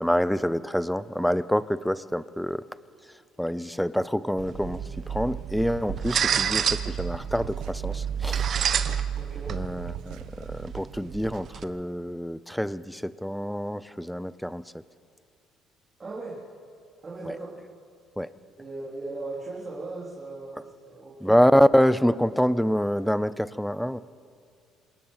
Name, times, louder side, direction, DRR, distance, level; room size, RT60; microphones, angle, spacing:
voice 1, 0.0-2.6 3.4-8.5 9.5-14.7 17.3-17.4 18.2-18.3 21.2-24.0, equal, ahead, 16 dB, 0.5 m, -26 dB
sound 1, 4.4-11.6, right 8 dB, 40° right, 0.9 m, -30 dB
sound 2, 5.7-6.7 7.0-8.0 8.2-9.2 9.5-10.5, right 11 dB, 75° right, 1.0 m, -39 dB
voice 2, 9.1-9.6 16.0-16.4 17.0-17.6 18.6-21.4, right 3 dB, 20° right, -6 dB, 3.5 m, -38 dB
27.0 x 18.0 x 5.7 m, 2.3 s
cardioid pair, 135°, 0 cm